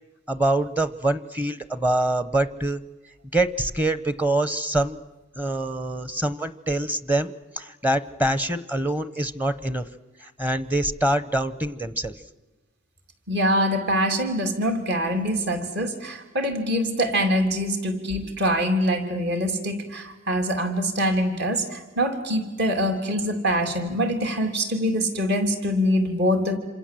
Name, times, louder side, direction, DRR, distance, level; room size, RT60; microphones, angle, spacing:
voice 1, 0.3-2.8 3.3-5.0 5.4-9.9 10.2-12.1, right 1 dB, 10° right, 13 dB, 0.8 m, -25 dB
voice 2, 13.3-26.6, equal, 55° right, 5 dB, 3.2 m, -24 dB
27.5 x 26.5 x 7.7 m, 1.1 s
head